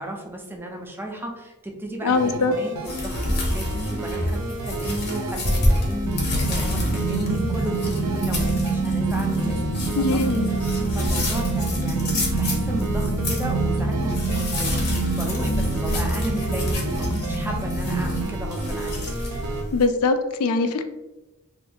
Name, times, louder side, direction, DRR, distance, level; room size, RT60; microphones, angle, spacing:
voice 1, 0.0-10.4 10.9-19.0, right 1 dB, 10° right, 2 dB, 0.4 m, -34 dB
voice 2, 2.0-2.5 10.0-10.5 19.7-20.8, left 3 dB, 70° left, 8 dB, 0.3 m, -22 dB
sound 1, 2.1-19.6, right 1 dB, 85° right, 0.5 m, -32 dB
sound 2, 2.8-19.8, left 1 dB, 45° left, 0.7 m, -29 dB
sound 3, 6.0-18.2, right 3 dB, 85° left, 1.3 m, -26 dB
2.6 x 2.5 x 3.4 m, 1.0 s
head